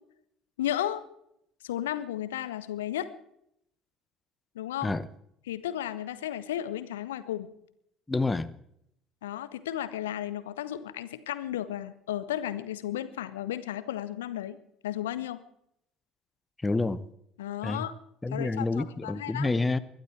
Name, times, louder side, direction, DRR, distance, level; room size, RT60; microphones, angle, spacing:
voice 1, 0.6-1.0 1.6-3.1 4.5-5.0 5.5-7.5 9.2-14.6 14.8-15.4 17.4-17.9 18.3-19.5, left 12 dB, 75° left, 14 dB, 0.9 m, -34 dB
voice 2, 8.1-8.5 16.6-17.1 17.6-17.9 18.2-19.8, left 3 dB, 15° left, 15 dB, 0.9 m, -28 dB
21.0 x 12.0 x 4.5 m, 0.74 s
figure-of-eight pair, 55°, 0 cm